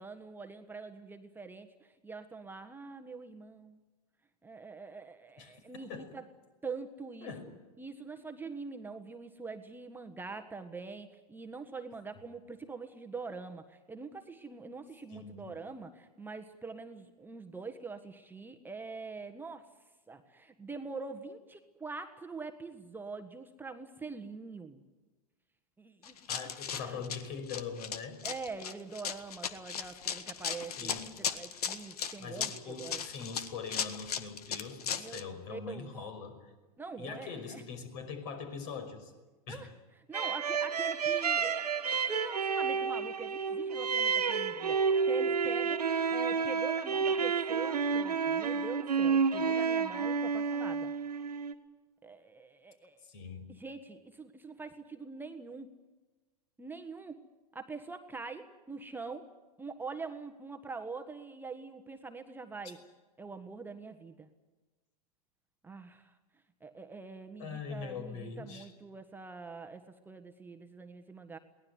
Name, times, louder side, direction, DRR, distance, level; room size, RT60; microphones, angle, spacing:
voice 1, 0.0-3.8 4.4-6.3 6.6-7.5 7.8-19.7 20.1-24.8 25.8-26.2 26.7-27.0 28.2-33.0 35.0-35.9 36.8-37.6 39.5-50.9 52.0-53.0 53.5-55.7 56.6-57.2 57.5-59.3 59.6-62.8 63.2-64.3 65.6-66.2 66.6-71.4, right 4 dB, 10° right, 6 dB, 1.4 m, -44 dB
voice 2, 5.4-6.1 7.2-7.4 15.1-15.5 26.3-28.2 30.8-31.2 32.2-36.5 37.0-39.1 39.5-39.7 53.0-53.5 67.4-68.7, left 5 dB, 50° left, 8 dB, 5.5 m, -42 dB
Run, 26.0-35.2, left 7 dB, 70° left, 1.7 m, -37 dB
sound 1, 40.1-51.5, right 5 dB, 85° right, 1.7 m, -30 dB
22.5 x 18.5 x 9.5 m, 1.2 s
hypercardioid pair, 100°, 20 cm